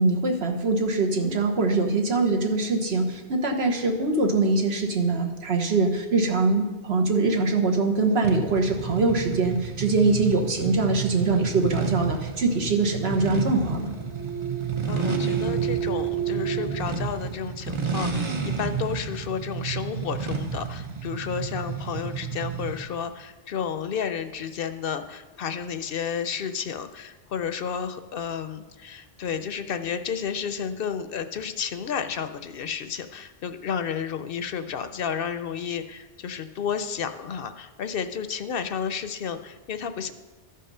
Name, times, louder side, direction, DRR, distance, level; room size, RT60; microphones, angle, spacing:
voice 1, 0.0-14.0, right 3 dB, 75° right, 2 dB, 1.4 m, -23 dB
sound 1, 8.2-22.9, right 6 dB, 35° right, 0.7 m, -31 dB
sound 2, 12.8-16.8, right 10 dB, 55° right, 1.5 m, -31 dB
voice 2, 14.9-40.1, left 7 dB, 65° left, 10 dB, 0.8 m, -31 dB
13.5 x 5.6 x 5.5 m, 1.2 s
omnidirectional pair, 1.1 m